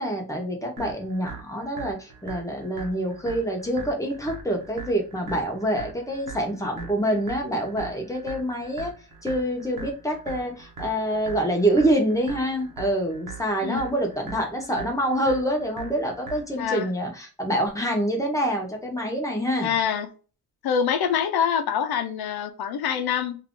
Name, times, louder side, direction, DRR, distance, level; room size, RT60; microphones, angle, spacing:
voice 1, 0.0-8.9 9.2-19.7, right 1 dB, 10° left, 0.9 m, -26 dB
sound 1, 0.8-16.8, right 5 dB, 60° right, 0.9 m, -41 dB
voice 2, 19.6-20.1 20.6-23.4, left 8 dB, 80° left, 0.6 m, -25 dB
2.7 x 2.6 x 3.5 m
wide cardioid pair, 140°, 37 cm